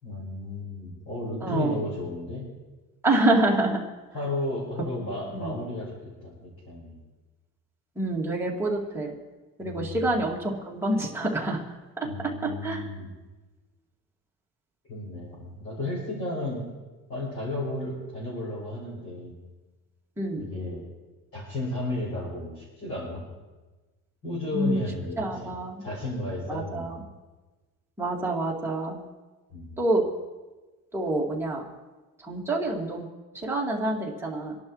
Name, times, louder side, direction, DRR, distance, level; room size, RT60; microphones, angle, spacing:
voice 1, 0.0-2.5 4.1-5.9 6.2-7.0 9.6-10.2 12.0-13.1 14.9-16.6 17.1-19.3 20.4-20.8 21.3-23.3 24.2-25.5 25.8-27.0 29.5-29.7, left 2 dB, 40° left, -9 dB, 6.1 m, -33 dB
voice 2, 1.4-1.7 3.0-3.8 5.3-5.5 8.0-9.1 9.6-11.6 12.4-12.9 20.2-20.5 24.5-24.9 25.2-25.8 26.5-27.0 28.0-29.0 29.8-30.0 30.9-31.7 32.2-33.1 33.3-34.6, right 2 dB, 5° right, -4 dB, 2.2 m, -27 dB
27.5 x 11.5 x 3.2 m, 1.2 s
cardioid pair, 160°, 35 cm